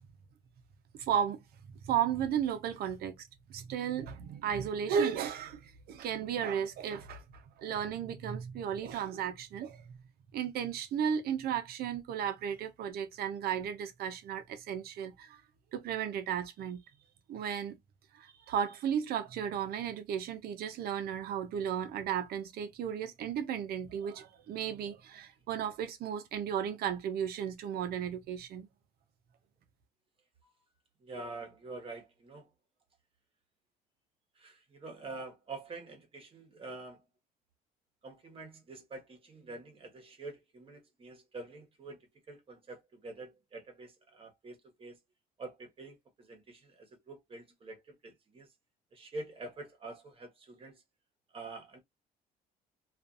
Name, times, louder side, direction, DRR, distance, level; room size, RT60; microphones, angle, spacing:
voice 1, 0.9-1.4 1.8-9.8 10.3-15.4 15.7-16.8 17.3-17.8 18.1-28.7, right 8 dB, 65° right, 0.7 m, -34 dB
voice 2, 31.0-32.5 34.4-37.0 38.0-45.0 45.4-48.5 48.9-50.8 51.3-51.8, right 3 dB, 35° right, 1.1 m, -46 dB
2.5 x 2.5 x 2.5 m
cardioid pair, 110°, 17 cm